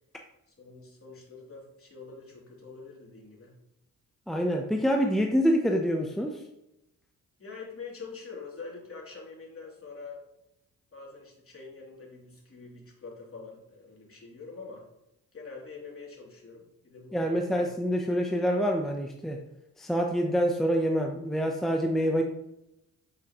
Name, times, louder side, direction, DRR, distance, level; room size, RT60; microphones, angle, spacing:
voice 1, 0.5-3.5 7.4-10.2 10.9-14.9 15.3-17.6, left 4 dB, 40° left, -2 dB, 3.0 m, -45 dB
voice 2, 4.3-6.4 17.1-19.4 19.8-22.2, equal, ahead, 2 dB, 0.8 m, -26 dB
8.4 x 6.2 x 3.1 m, 0.85 s
cardioid pair, 65°, 35 cm